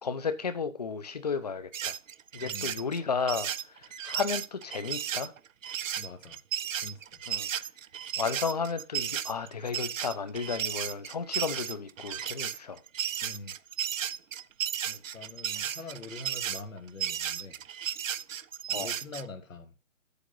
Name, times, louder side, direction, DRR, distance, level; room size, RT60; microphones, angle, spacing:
voice 1, 0.0-2.0 2.3-5.3 7.3-7.5 8.2-12.8 14.9-15.0 15.5-15.8 18.7-18.9, left 5 dB, 30° left, 0.7 m, -33 dB
sound 1, 1.7-19.2, right 9 dB, 75° right, 0.6 m, -34 dB
voice 2, 2.4-2.8 6.0-6.4 6.7-7.2 13.2-13.6 15.1-17.6 18.7-19.7, left 3 dB, 80° left, 2.1 m, -44 dB
8.2 x 7.0 x 3.8 m
hypercardioid pair, 165°, 39 cm